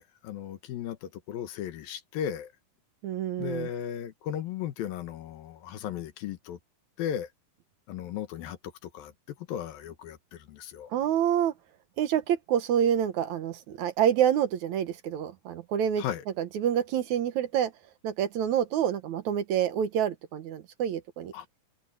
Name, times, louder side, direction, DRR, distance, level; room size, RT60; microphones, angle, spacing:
voice 1, 0.0-2.5 3.4-6.6 7.0-7.3 7.9-9.1 9.4-10.9 16.0-16.2 21.3-21.5, left 10 dB, 85° left, 3.1 m, -36 dB
voice 2, 3.0-3.7 10.9-11.5 12.0-16.0 16.4-17.7 18.0-21.3, right 9 dB, 65° right, 2.2 m, -27 dB
omnidirectional pair, 4.0 m